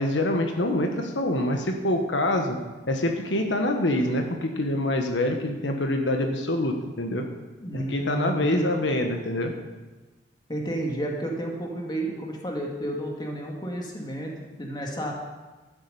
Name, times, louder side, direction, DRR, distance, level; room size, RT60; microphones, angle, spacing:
voice 1, 0.0-2.6 2.9-7.2 7.7-9.5, left 1 dB, 90° left, 4 dB, 1.3 m, -25 dB
voice 2, 7.6-8.8 10.5-15.1, right 1 dB, 25° left, 0 dB, 2.0 m, -32 dB
12.0 x 7.5 x 6.9 m, 1.2 s
head